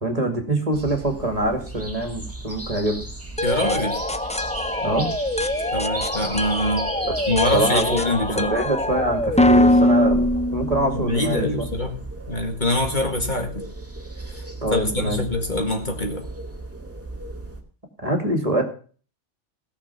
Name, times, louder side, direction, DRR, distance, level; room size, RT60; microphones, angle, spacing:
voice 1, 0.0-3.0 4.8-5.1 7.0-7.1 7.5-8.0 8.3-11.5 14.6-15.2 18.0-18.6, right 1 dB, 30° right, 4 dB, 2.4 m, -24 dB
sound 1, 0.7-17.6, right 2 dB, 10° right, 2.0 m, -35 dB
voice 2, 3.4-4.0 5.7-6.9 7.3-8.5 10.9-13.6 14.3-14.4 14.7-16.3, left 1 dB, 40° left, 4 dB, 2.1 m, -24 dB
sound 2, 3.4-11.2, left 1 dB, 10° left, 0.5 m, -22 dB
17.5 x 6.7 x 5.7 m, 0.40 s
omnidirectional pair, 1.2 m